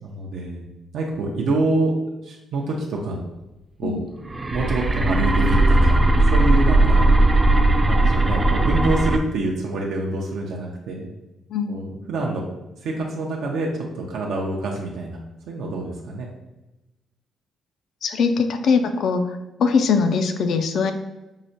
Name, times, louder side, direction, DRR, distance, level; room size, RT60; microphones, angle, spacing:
voice 1, 0.0-0.6 0.9-1.9 2.2-3.2 3.8-4.0 4.5-6.0 6.3-7.5 7.8-11.1 11.7-12.4 12.8-15.2 15.5-16.3, right 2 dB, 75° right, -1 dB, 0.5 m, -26 dB
sound 1, 4.2-9.2, right 2 dB, 20° right, 0.3 m, -17 dB
voice 2, 18.0-20.9, left 5 dB, 70° left, 7 dB, 0.3 m, -21 dB
4.7 x 2.1 x 2.7 m, 0.98 s
cardioid pair, 90°, 0 cm